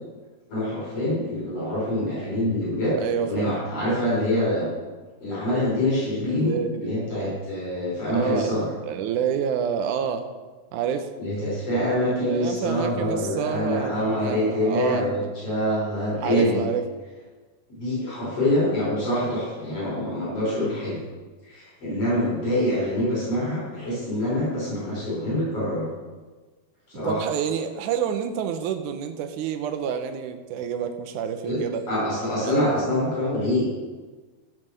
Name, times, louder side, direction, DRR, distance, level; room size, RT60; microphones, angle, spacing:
voice 1, 0.5-4.7 5.2-8.7 11.2-16.6 17.8-21.0 21.4-25.9 26.9-27.2 31.4-31.6 31.9-33.7, left 1 dB, 50° left, -7 dB, 5.5 m, -25 dB
voice 2, 3.0-3.5 6.3-6.9 8.1-8.6 8.8-10.3 10.7-11.1 12.1-15.3 16.2-16.8 27.0-31.8 32.4-32.7, right 8 dB, 85° right, 7 dB, 2.3 m, -28 dB
15.0 x 5.8 x 6.5 m, 1.3 s
omnidirectional pair, 3.5 m